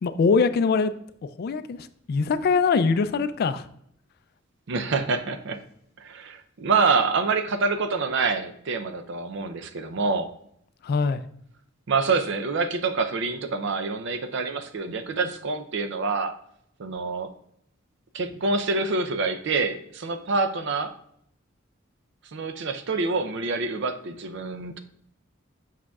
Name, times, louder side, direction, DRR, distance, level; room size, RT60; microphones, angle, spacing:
voice 1, 0.0-0.9 1.2-3.7 10.8-11.2, left 4 dB, 50° left, 13 dB, 0.3 m, -23 dB
voice 2, 4.7-5.6 6.0-10.3 11.9-16.3 16.8-17.3 18.1-20.9 22.3-24.8, right 4 dB, 65° right, 9 dB, 0.5 m, -26 dB
7.4 x 5.7 x 2.3 m, 0.70 s
head